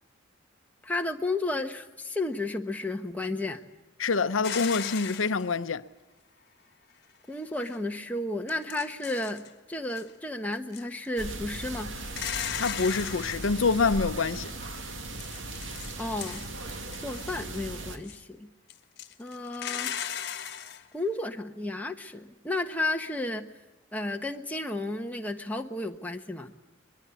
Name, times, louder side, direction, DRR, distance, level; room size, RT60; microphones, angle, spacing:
voice 1, 0.8-3.6 7.3-11.9 16.0-16.5 17.0-18.5 19.2-20.0 20.9-23.5 23.9-26.5, left 2 dB, 10° left, 1.2 m, -32 dB
voice 2, 4.0-5.8 12.6-14.5, left 4 dB, 85° left, 0.7 m, -26 dB
sound 1, 4.4-5.5 7.6-7.8 8.5-9.5 9.9-10.1 10.5-11.1 12.1-13.6 15.2-16.6 16.9-17.5 18.0-18.2 18.7-20.8, left 9 dB, 55° left, 1.5 m, -36 dB
sound 2, 11.2-18.0, right 2 dB, 75° right, 2.5 m, -38 dB
23.5 x 22.0 x 8.5 m
head